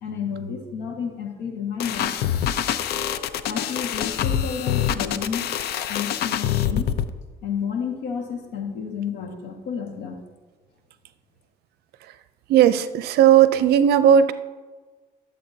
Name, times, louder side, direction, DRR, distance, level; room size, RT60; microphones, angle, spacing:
voice 1, 0.0-2.1 3.5-5.6 5.9-6.9 7.4-10.2, left 7 dB, 90° left, 3 dB, 1.7 m, -31 dB
sound 1, 1.8-7.1, left 10 dB, 70° left, 0.6 m, -25 dB
voice 2, 12.5-14.3, right 9 dB, 70° right, 13 dB, 0.5 m, -16 dB
15.5 x 7.5 x 2.8 m, 1.3 s
cardioid pair, 110°, 17 cm